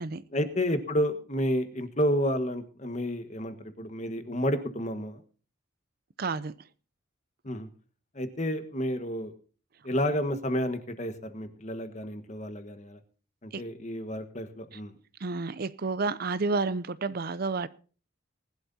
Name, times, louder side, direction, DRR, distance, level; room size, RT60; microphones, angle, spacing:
voice 1, 0.3-5.2 7.4-7.7 8.1-9.3 9.8-13.0 13.4-14.9, equal, 35° left, 1.4 m, -30 dB
voice 2, 6.2-6.5 13.5-13.6 14.7-14.8 15.2-17.7, right 3 dB, 50° right, 0.5 m, -30 dB
20.5 x 11.5 x 2.7 m
head